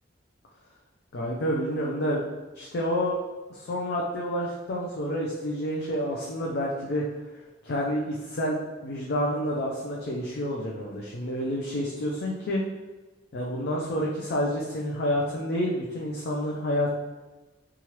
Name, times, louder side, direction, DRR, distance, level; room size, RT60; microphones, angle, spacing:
voice 1, 1.1-2.2 2.5-3.2 3.5-7.0 7.6-8.6 8.8-12.6 13.3-16.9, equal, 60° left, -3 dB, 0.4 m, -29 dB
3.1 x 2.4 x 2.8 m, 1.2 s
head